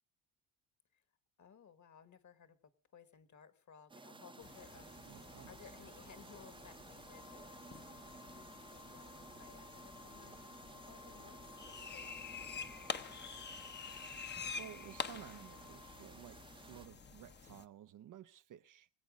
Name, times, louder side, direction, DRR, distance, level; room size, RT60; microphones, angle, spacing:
voice 1, 1.4-10.6 10.9-13.2, left 7 dB, 40° left, 1.6 m, -61 dB
sound 1, 3.9-16.9, right 3 dB, 10° right, 0.7 m, -56 dB
sound 2, 4.4-17.6, left 5 dB, 25° left, 0.8 m, -48 dB
voice 2, 5.0-5.7 14.3-18.9, right 10 dB, 50° right, 0.6 m, -54 dB
Wind instrument woodwind instrument, 7.1-16.0, left 11 dB, 65° left, 0.9 m, -60 dB
24.0 x 8.4 x 5.1 m
cardioid pair, 110°, 42 cm